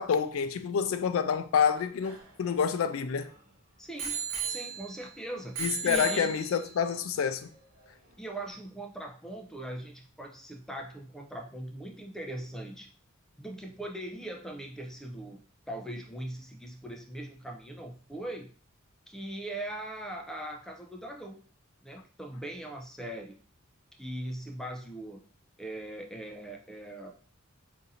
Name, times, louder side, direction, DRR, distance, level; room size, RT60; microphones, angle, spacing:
voice 1, 0.0-3.3 5.6-7.5, left 7 dB, 75° left, 0.4 m, -28 dB
Bicycle bell, 1.7-3.3 4.0-5.1 5.5-6.8 7.5-7.6, right 6 dB, 80° right, 1.0 m, -36 dB
voice 2, 3.8-4.2 4.5-6.4 8.2-12.9 13.4-15.4 15.7-18.5 19.1-21.4 21.8-23.4 24.0-25.2 25.6-27.1, right 1 dB, 5° left, 0.4 m, -40 dB
2.6 x 2.5 x 4.0 m
head